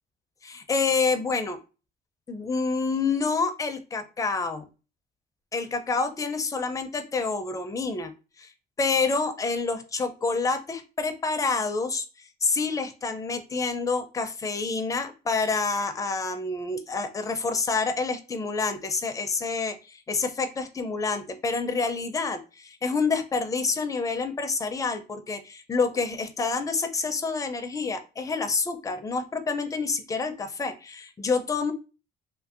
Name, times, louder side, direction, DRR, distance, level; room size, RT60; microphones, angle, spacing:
voice 1, 0.4-1.6 2.3-4.6 5.5-8.1 8.4-8.5 8.8-12.0 12.4-31.7, left 4 dB, 20° left, 8 dB, 0.4 m, -28 dB
2.7 x 2.6 x 2.4 m, 0.32 s
cardioid pair, 110°, 17 cm